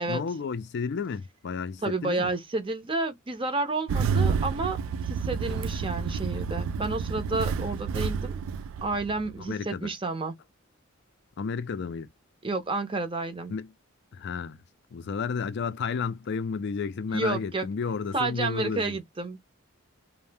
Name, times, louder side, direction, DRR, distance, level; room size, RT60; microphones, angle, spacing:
voice 1, 0.0-2.3 9.5-9.9 11.4-12.1 13.5-13.7 14.1-14.6 14.9-19.0, left 5 dB, 55° left, 0.4 m, -32 dB
voice 2, 1.8-8.4 8.8-10.3 12.4-13.5 17.1-17.7 18.1-19.4, right 3 dB, 25° right, 0.6 m, -30 dB
Engine starting, 3.9-9.4, right 6 dB, 75° right, 0.3 m, -29 dB
2.6 x 2.0 x 3.3 m
head